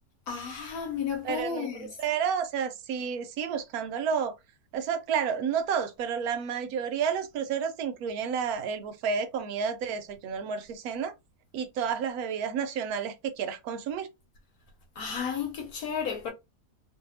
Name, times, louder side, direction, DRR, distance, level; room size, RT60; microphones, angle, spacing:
voice 1, 0.3-1.9 15.0-16.3, left 6 dB, 65° left, 1.2 m, -33 dB
voice 2, 1.2-4.3 4.7-11.1 11.5-14.1, right 7 dB, 70° right, 1.0 m, -31 dB
2.6 x 2.6 x 2.7 m
omnidirectional pair, 1.8 m